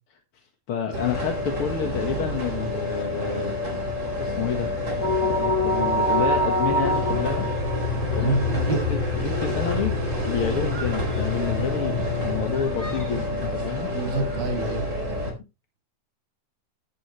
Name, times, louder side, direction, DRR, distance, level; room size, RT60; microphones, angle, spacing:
voice 1, 0.7-3.6 4.2-4.7 5.0-7.5 8.1-10.0 10.2-13.9, left 7 dB, 50° left, 4 dB, 1.9 m, -29 dB
sound 1, 0.9-15.3, left 2 dB, 20° right, 4.4 m, -27 dB
sound 2, 5.0-8.4 8.8-8.9 10.7-12.2 12.6-13.1 13.6-13.9 14.5-15.2, equal, 5° left, 1.8 m, -27 dB
voice 2, 8.2-8.8 13.9-14.9, right 2 dB, 85° right, 5 dB, 3.8 m, -27 dB
13.0 x 10.0 x 3.1 m, 0.27 s
omnidirectional pair, 3.8 m